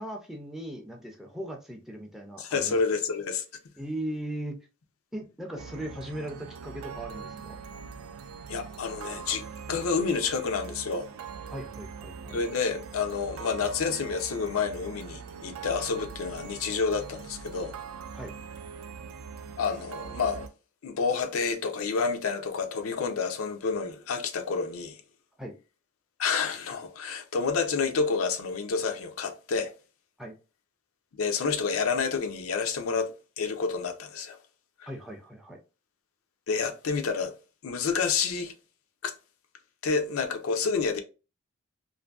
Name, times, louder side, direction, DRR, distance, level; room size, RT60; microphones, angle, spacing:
voice 1, 0.0-2.8 3.8-4.6 5.1-7.6 11.5-12.4 18.1-18.3 25.4-25.5 30.2-30.3 34.9-35.6, right 1 dB, ahead, 0.3 m, -38 dB
voice 2, 2.4-3.4 8.5-9.4 9.7-11.1 12.3-17.7 19.6-20.5 20.8-25.0 26.2-29.7 31.2-34.4 34.8-34.9 36.5-37.3 37.6-38.5 39.0-39.1 39.8-41.0, left 5 dB, 85° left, 0.5 m, -29 dB
sound 1, 5.6-20.5, right 6 dB, 85° right, 0.3 m, -42 dB
2.5 x 2.5 x 2.3 m
head